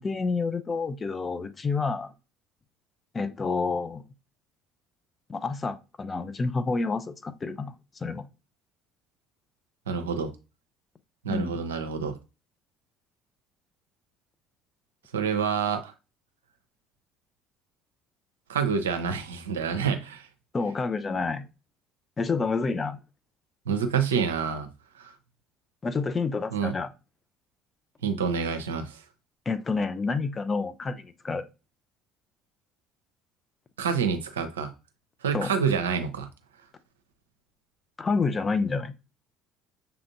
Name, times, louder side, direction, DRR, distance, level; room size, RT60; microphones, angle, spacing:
voice 1, 0.0-2.1 3.1-4.0 5.3-7.7 8.0-8.3 11.3-11.6 20.5-21.5 22.2-23.0 25.8-26.9 29.5-31.5 35.3-35.5 38.0-38.9, left 4 dB, 30° left, 0.5 m, -28 dB
voice 2, 9.9-10.3 11.2-12.1 15.1-15.9 18.5-20.3 23.7-24.7 25.0-25.1 26.5-26.7 28.0-29.0 33.8-34.7 35.2-36.3, right 6 dB, 80° right, 0.5 m, -27 dB
6.7 x 2.5 x 2.6 m
hypercardioid pair, 60°, 0 cm